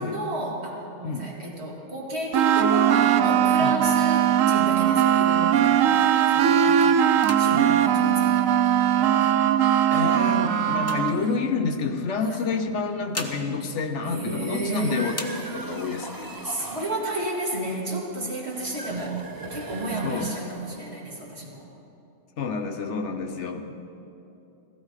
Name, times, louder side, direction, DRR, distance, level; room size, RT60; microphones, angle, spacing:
voice 1, 0.0-5.9 6.3-7.0 7.4-9.3 12.2-12.4 14.0-15.7 16.4-21.7, right 1 dB, 50° right, -3 dB, 2.6 m, -32 dB
sound 1, 2.3-11.2, right 9 dB, 80° right, 1.0 m, -20 dB
sound 2, 4.4-6.1 6.5-6.8 7.1-9.0 9.7-11.8 12.7-14.7 15.1-16.0 16.4-16.5 16.8-17.4 17.9-18.8, left 1 dB, 15° left, 0.9 m, -42 dB
voice 2, 9.9-15.3 15.5-16.3 20.0-20.3 22.4-23.7, left 4 dB, 65° left, 6 dB, 1.1 m, -29 dB
sound 3, 14.6-17.1 18.4-20.9, right 2 dB, 20° right, 0.7 m, -39 dB
16.5 x 15.0 x 4.8 m, 3.0 s
omnidirectional pair, 1.4 m